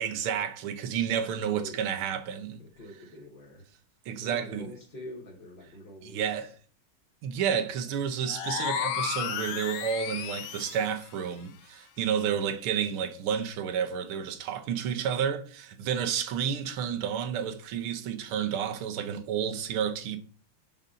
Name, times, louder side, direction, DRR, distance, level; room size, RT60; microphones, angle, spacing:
voice 1, 0.0-2.6 4.1-4.7 6.0-6.5 7.2-20.2, right 8 dB, 90° right, 1.7 m, -30 dB
voice 2, 2.6-3.6 4.2-6.5 7.6-7.9, left 1 dB, 35° left, 1.1 m, -46 dB
sound 1, 8.3-11.0, left 8 dB, 70° left, 1.1 m, -33 dB
5.6 x 5.3 x 3.7 m
omnidirectional pair, 2.3 m